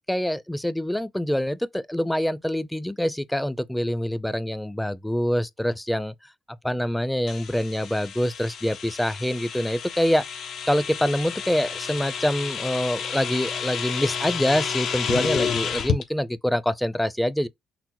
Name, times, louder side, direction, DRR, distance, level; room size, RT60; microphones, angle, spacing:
voice 1, 0.1-6.1 6.6-10.2 10.7-17.5, equal, 5° left, 0.4 m, -25 dB
sound 1, 7.3-16.0, left 7 dB, 75° left, 0.6 m, -30 dB
5.9 x 2.0 x 2.9 m
cardioid pair, 90°, 0 cm